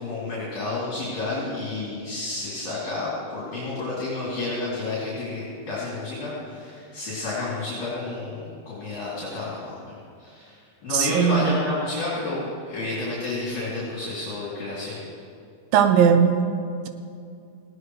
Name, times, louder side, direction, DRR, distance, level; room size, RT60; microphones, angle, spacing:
voice 1, 0.0-9.8 10.2-10.6 10.8-12.4 12.7-15.0, left 2 dB, 50° left, -8 dB, 4.1 m, -30 dB
voice 2, 10.9-11.6 15.7-16.4, right 8 dB, 75° right, 7 dB, 2.2 m, -18 dB
19.0 x 17.0 x 3.2 m, 2.4 s
omnidirectional pair, 4.8 m